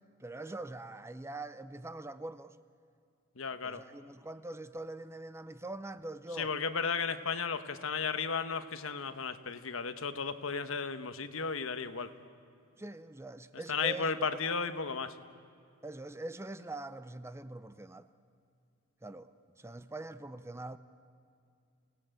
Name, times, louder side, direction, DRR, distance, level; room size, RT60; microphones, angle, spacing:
voice 1, 0.2-2.6 3.6-6.6 12.8-14.4 15.8-18.1 19.0-19.3 19.6-20.8, right 2 dB, 10° right, 0.6 m, -43 dB
voice 2, 3.4-3.8 6.4-12.1 13.7-15.1, left 5 dB, 65° left, 1.1 m, -34 dB
29.0 x 18.5 x 9.0 m
head